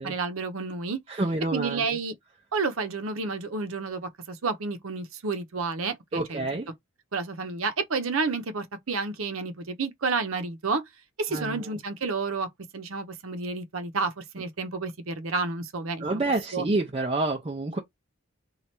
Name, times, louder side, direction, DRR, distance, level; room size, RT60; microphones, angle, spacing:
voice 1, 0.0-1.0 1.5-2.1 2.5-6.5 7.1-10.8 11.2-16.2 16.5-16.6, right 4 dB, 75° right, 0.7 m, -30 dB
voice 2, 1.1-1.9 6.1-6.7 11.3-11.6 16.0-17.8, right 2 dB, 25° right, 0.5 m, -28 dB
3.2 x 2.4 x 4.3 m
head